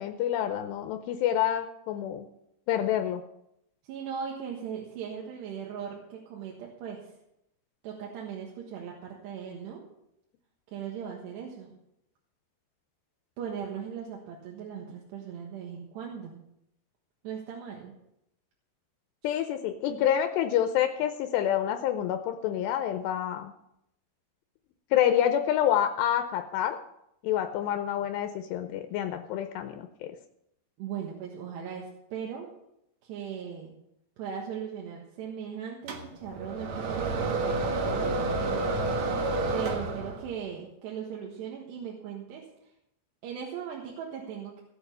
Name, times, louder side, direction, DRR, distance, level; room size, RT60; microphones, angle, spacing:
voice 1, 0.0-2.3 2.7-3.2 19.2-23.5 24.9-26.8 27.2-30.1, left 10 dB, 80° left, 7 dB, 2.8 m, -27 dB
voice 2, 3.8-7.1 7.8-9.9 10.7-11.8 13.4-16.4 17.2-18.0 19.2-19.4 19.9-20.0 30.8-32.5 33.0-33.7 34.2-39.3 39.5-42.5 43.2-44.6, right 8 dB, 75° right, -1 dB, 3.6 m, -39 dB
sound 1, 35.9-40.4, right 2 dB, 60° right, 2.1 m, -29 dB
17.0 x 7.1 x 6.7 m, 0.80 s
omnidirectional pair, 5.0 m